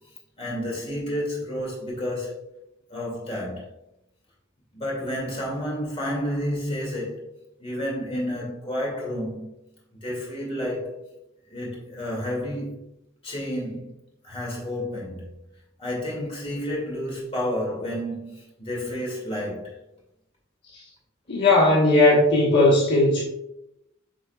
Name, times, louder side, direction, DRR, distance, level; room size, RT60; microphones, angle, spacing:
voice 1, 0.4-2.6 2.9-3.7 4.7-7.3 7.6-9.5 9.9-11.0 11.5-12.8 13.2-14.0 14.2-15.3 15.8-19.8, equal, 30° left, 2.2 m, -30 dB
voice 2, 21.3-23.2, left 2 dB, 60° left, 1.2 m, -17 dB
8.8 x 4.7 x 2.3 m
head